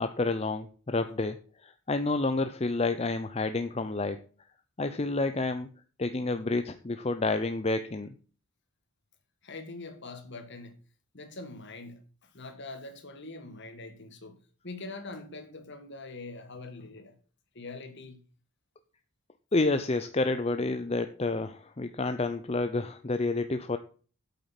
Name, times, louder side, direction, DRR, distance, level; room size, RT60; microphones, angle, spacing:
voice 1, 0.0-4.3 4.8-5.7 6.0-8.1 19.5-23.8, left 3 dB, 25° left, 0.6 m, -29 dB
voice 2, 9.4-10.8 11.1-17.2 17.5-18.2, left 3 dB, 50° left, 2.0 m, -43 dB
8.4 x 8.3 x 6.0 m
head